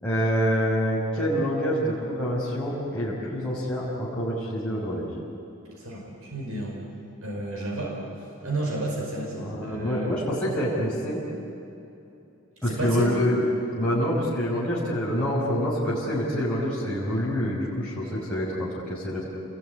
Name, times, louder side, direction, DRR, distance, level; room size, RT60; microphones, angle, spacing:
voice 1, 0.0-5.1 9.3-11.2 12.6-13.5 13.8-19.2, equal, 5° left, -9 dB, 5.8 m, -26 dB
voice 2, 5.7-6.8 7.2-8.0 8.4-10.1 12.6-13.2, right 2 dB, 80° right, -1 dB, 5.2 m, -31 dB
29.0 x 21.0 x 9.6 m, 2.9 s
head